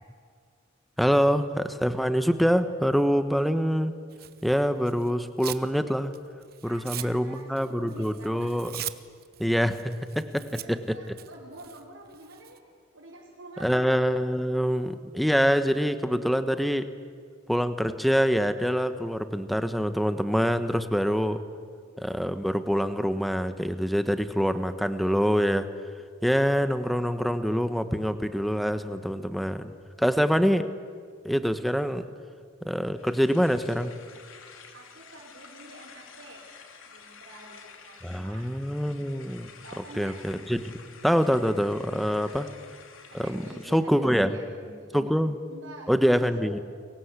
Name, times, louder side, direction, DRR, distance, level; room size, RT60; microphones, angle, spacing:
voice 1, 1.0-3.9 4.4-6.1 6.6-8.7 9.4-10.8 13.6-16.9 17.5-21.4 22.0-25.7 26.2-29.7 30.0-30.7 31.2-32.0 32.6-33.9 38.0-39.5 40.0-40.8 41.0-42.5 43.1-43.4 43.7-44.3 44.9-45.4 45.9-46.6, equal, ahead, 10 dB, 1.1 m, -25 dB
Tearing, 4.1-5.7 6.1-12.6, right 13 dB, 50° right, 1.0 m, -41 dB
voice 2, 6.6-8.5 10.3-12.6 12.9-13.8 21.5-21.6 34.7-36.4 36.9-38.5 39.6-40.2 42.1-42.4 43.1-45.0 45.5-46.6, right 1 dB, 70° right, -6 dB, 5.1 m, -48 dB
sound 1, 32.9-43.9, left 5 dB, 85° left, 3.1 m, -50 dB
30.0 x 23.0 x 8.3 m, 2.1 s
head